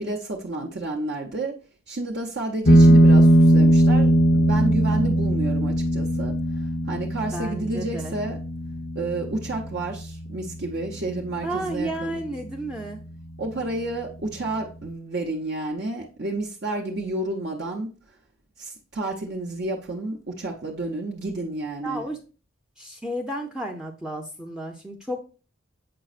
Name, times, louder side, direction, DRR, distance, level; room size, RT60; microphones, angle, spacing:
voice 1, 0.0-1.6 1.9-8.4 8.9-12.2 13.4-17.9 18.6-22.0, right 2 dB, 55° right, -1 dB, 0.8 m, -30 dB
sound 1, 2.6-11.7, right 1 dB, 45° left, 0.6 m, -19 dB
voice 2, 7.3-8.2 11.4-13.0 21.8-22.2 22.8-25.2, right 1 dB, 5° right, 3 dB, 0.5 m, -32 dB
7.6 x 5.0 x 2.4 m, 0.35 s
head